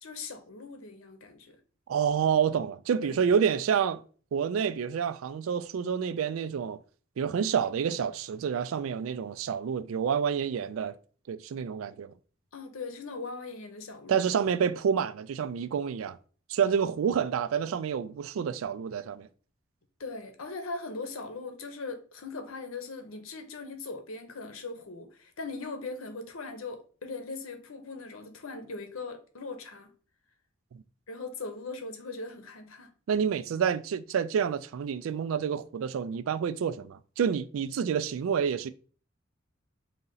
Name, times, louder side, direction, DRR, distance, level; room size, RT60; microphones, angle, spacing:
voice 1, 0.0-1.6 3.0-3.2 12.5-14.2 20.0-29.9 31.1-32.9, left 3 dB, 90° left, 0.8 m, -40 dB
voice 2, 1.9-4.0 4.3-6.8 7.2-11.0 11.3-12.1 14.1-16.2 16.5-19.3 30.7-30.8 33.1-38.7, right 7 dB, 75° right, 0.3 m, -28 dB
4.0 x 2.8 x 3.8 m
head